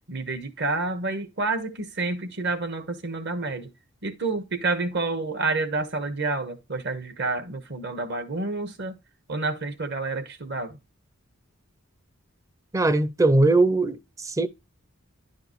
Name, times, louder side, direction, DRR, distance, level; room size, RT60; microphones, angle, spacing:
voice 1, 0.1-3.7 4.0-9.0 9.3-10.8, right 3 dB, 55° right, 1.3 m, -29 dB
voice 2, 12.7-14.5, right 2 dB, 15° right, 0.5 m, -20 dB
10.5 x 5.0 x 3.1 m
head